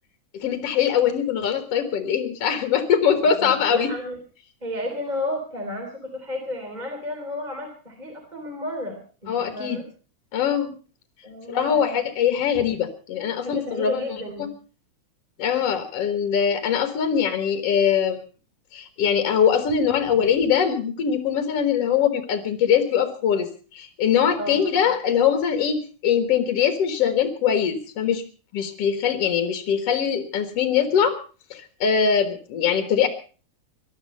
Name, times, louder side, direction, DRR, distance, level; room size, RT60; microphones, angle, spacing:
voice 1, 0.3-3.9 9.3-9.8 10.3-10.8 11.5-14.0 15.4-18.2 18.7-28.2 28.5-31.2 31.5-33.1, left 7 dB, 55° left, 8 dB, 2.4 m, -22 dB
voice 2, 3.4-4.2 4.6-9.8 11.2-12.1 12.4-12.7 13.4-14.5 24.4-24.6, left 1 dB, 15° right, 4 dB, 3.1 m, -32 dB
19.5 x 12.5 x 5.5 m, 0.39 s
omnidirectional pair, 3.5 m